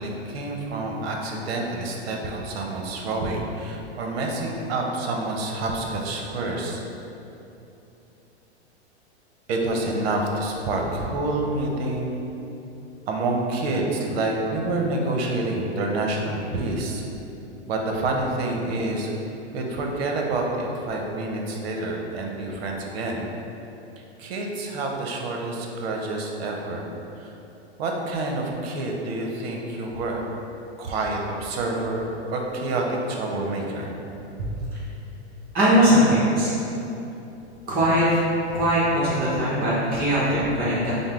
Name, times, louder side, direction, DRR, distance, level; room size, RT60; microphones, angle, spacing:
voice 1, 0.0-6.8 9.5-12.2 13.1-17.0 17.7-19.1 19.5-23.3 24.2-26.9 27.2-27.3 27.8-30.2 30.8-33.9, right 2 dB, 65° right, 0 dB, 0.7 m, -28 dB
voice 2, 35.5-36.5 37.7-38.1 38.5-40.9, equal, 25° right, -8 dB, 0.8 m, -20 dB
5.3 x 2.0 x 3.6 m, 3.0 s
hypercardioid pair, 135°, 34 cm